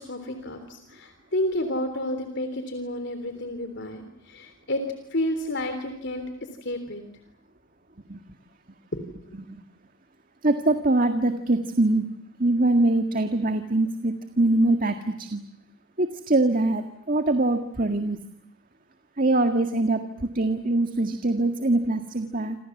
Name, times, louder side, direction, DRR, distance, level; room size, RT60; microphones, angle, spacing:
voice 1, 0.0-4.9 5.1-6.3 6.6-7.0 8.9-9.0, left 1 dB, 60° left, 7 dB, 3.4 m, -30 dB
voice 2, 10.4-12.1 12.4-15.4 16.0-18.2 19.2-22.6, right 2 dB, 40° right, 7 dB, 1.9 m, -23 dB
28.5 x 27.0 x 7.3 m, 0.74 s
head